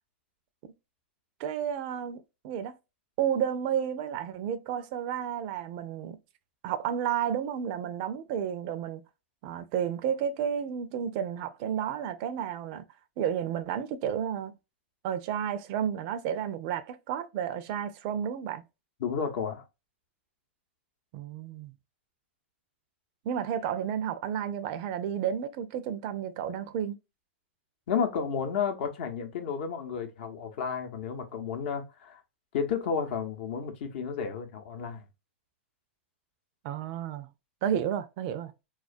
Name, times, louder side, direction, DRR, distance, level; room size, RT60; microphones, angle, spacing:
voice 1, 1.4-2.7 3.2-6.2 6.6-9.0 9.4-12.8 13.2-14.6 15.0-18.6 21.1-21.7 23.2-27.0 36.6-37.3 37.6-38.5, right 9 dB, 45° right, 0.4 m, -31 dB
voice 2, 19.0-19.6 27.9-32.2 32.5-35.1, left 6 dB, 60° left, 0.7 m, -32 dB
2.3 x 2.2 x 2.4 m
hypercardioid pair, 125°, 7 cm